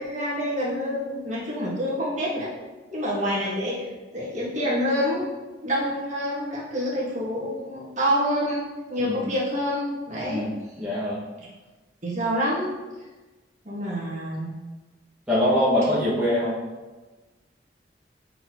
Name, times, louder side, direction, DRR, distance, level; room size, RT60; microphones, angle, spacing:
voice 1, 0.0-2.5 2.9-3.9 4.1-5.3 5.6-10.4 12.0-12.7 13.6-14.5, equal, 40° right, -6 dB, 1.8 m, -27 dB
voice 2, 10.8-11.2 15.3-16.6, left 1 dB, 5° right, -9 dB, 1.2 m, -23 dB
7.8 x 4.4 x 3.1 m, 1.2 s
head